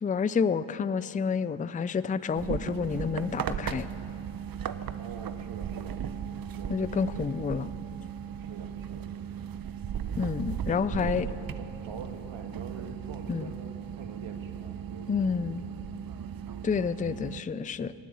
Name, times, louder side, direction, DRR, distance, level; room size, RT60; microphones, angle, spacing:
voice 1, 0.0-3.9 6.7-7.7 10.2-11.3 13.3-13.5 15.1-15.6 16.6-17.9, left 6 dB, 15° left, 16 dB, 0.4 m, -29 dB
sound 1, 2.3-17.4, right 8 dB, 45° right, 0.7 m, -37 dB
voice 2, 5.0-6.0 6.3-7.3 8.4-9.1 10.0-10.3 10.7-15.5, right 5 dB, 65° right, 6 dB, 1.6 m, -45 dB
16.0 x 8.3 x 9.5 m, 2.8 s
supercardioid pair, 50°, 49 cm